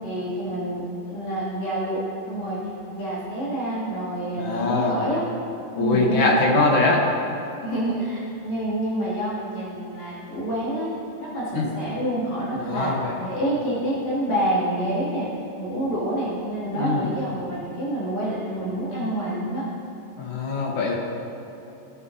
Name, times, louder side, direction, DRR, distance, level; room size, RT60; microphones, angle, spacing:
voice 1, 0.0-2.0 2.2-2.6 2.9-5.2 5.7-6.7 7.6-10.9 11.2-12.9 13.2-15.3 15.6-19.6, right 1 dB, 50° left, -9 dB, 3.8 m, -27 dB
voice 2, 4.4-5.0 5.8-7.0 11.5-11.7 12.5-13.2 16.7-17.1 20.2-20.9, left 3 dB, 65° left, -2 dB, 1.2 m, -22 dB
18.0 x 10.5 x 2.8 m, 2.8 s
omnidirectional pair, 4.3 m